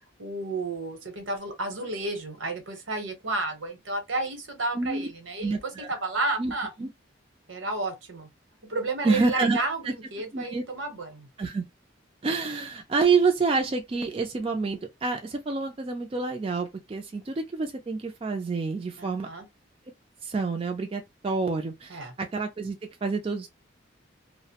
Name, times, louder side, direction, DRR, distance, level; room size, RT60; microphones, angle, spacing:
voice 1, 0.2-5.5 5.9-6.7 7.5-8.3 8.7-11.3 19.0-19.4 21.9-22.1, right 2 dB, 80° right, 0.9 m, -32 dB
voice 2, 4.7-5.1 5.4-6.0 6.4-6.5 6.8-6.9 9.0-9.9 10.3-10.6 11.4-11.6 12.2-19.3 20.2-23.5, right 4 dB, 30° right, 0.3 m, -28 dB
2.4 x 2.0 x 2.8 m
head